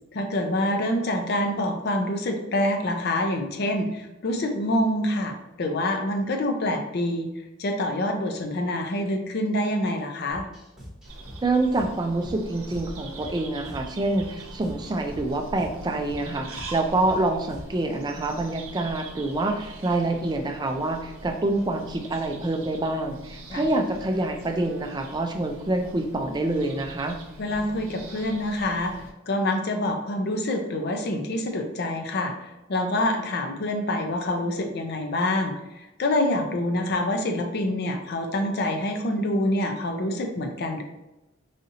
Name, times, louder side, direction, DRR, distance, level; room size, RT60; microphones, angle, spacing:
voice 1, 0.1-7.3 7.6-10.5 23.5-23.6 27.4-28.9 29.3-40.8, left 1 dB, 50° left, 4 dB, 0.5 m, -26 dB
sound 1, 10.3-17.9, equal, 5° right, 1.3 m, -45 dB
sound 2, 11.0-29.1, right 1 dB, 80° right, 0.7 m, -42 dB
voice 2, 11.4-27.2, right 2 dB, 20° right, 4 dB, 0.4 m, -26 dB
4.9 x 2.7 x 2.7 m, 0.97 s
head